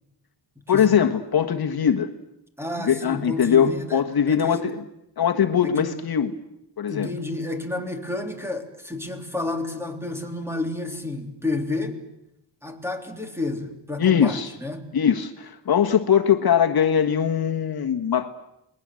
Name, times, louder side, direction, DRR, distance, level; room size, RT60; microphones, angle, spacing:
voice 1, 0.7-2.1 2.9-4.8 5.2-6.3 6.8-7.1 14.0-14.5 14.9-18.3, left 8 dB, 55° left, 5 dB, 1.5 m, -21 dB
voice 2, 2.6-4.0 4.3-4.7 5.6-5.9 6.9-12.1 12.6-14.9, left 2 dB, 5° right, 5 dB, 3.3 m, -30 dB
29.5 x 21.0 x 7.7 m, 0.84 s
wide cardioid pair, 120°, 44 cm